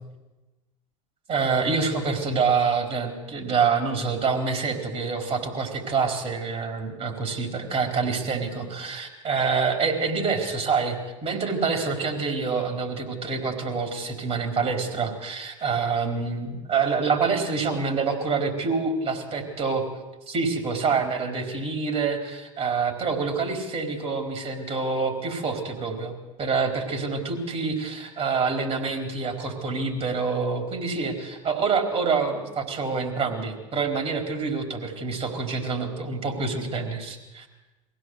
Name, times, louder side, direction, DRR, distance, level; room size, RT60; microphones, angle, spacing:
voice 1, 1.3-19.8 20.3-26.1 26.4-37.5, right 5 dB, 40° right, 4 dB, 4.5 m, -26 dB
23.0 x 16.5 x 8.1 m, 1.1 s
figure-of-eight pair, 70°, 17 cm